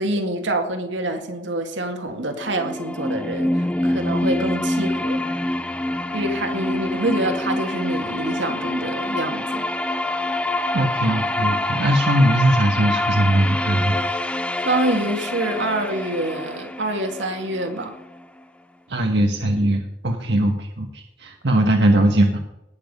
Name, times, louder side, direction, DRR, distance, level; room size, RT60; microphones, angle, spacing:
voice 1, 0.0-5.3 6.1-9.6 14.6-17.9, right 1 dB, 85° right, 5 dB, 2.0 m, -26 dB
sound 1, 2.3-18.2, left 1 dB, 5° left, 0.5 m, -26 dB
voice 2, 10.7-14.4 18.9-22.4, right 1 dB, 65° right, 3 dB, 1.3 m, -20 dB
18.5 x 7.2 x 5.4 m, 0.88 s
head